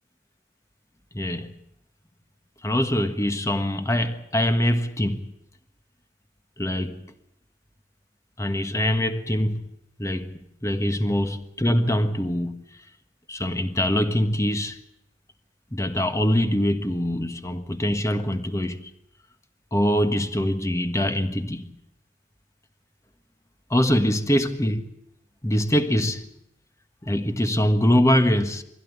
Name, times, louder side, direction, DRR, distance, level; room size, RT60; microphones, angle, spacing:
voice 1, 1.1-1.5 2.6-5.2 6.6-7.0 8.4-9.7 10.0-12.6 13.3-14.8 15.7-18.9 19.7-21.7 23.7-24.9 25.4-26.2 27.0-28.6, equal, 20° left, 1.5 m, -23 dB
23.0 x 16.0 x 9.5 m
head